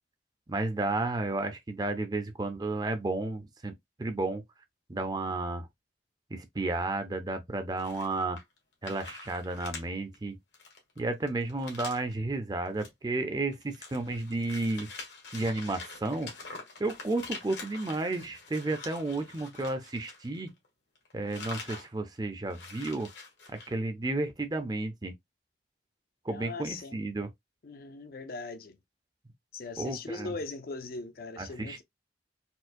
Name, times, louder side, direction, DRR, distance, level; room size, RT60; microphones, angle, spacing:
voice 1, 0.5-3.7 4.0-4.4 4.9-5.7 6.3-8.4 8.8-10.4 11.0-14.9 15.3-16.3 16.8-20.5 21.1-23.1 23.5-25.1 26.2-27.3 29.8-30.3 31.4-31.8, right 2 dB, 20° right, 0.5 m, -32 dB
sound 1, 7.8-8.6 8.8-9.8 10.1-10.2 10.5-12.1 12.7-12.9 13.2-20.7 21.0-21.9 22.2-22.3 22.5-23.7, left 4 dB, 80° left, 1.3 m, -45 dB
voice 2, 26.3-27.0 27.6-28.8 29.5-31.8, left 3 dB, 55° left, 0.5 m, -40 dB
4.3 x 2.1 x 2.5 m
head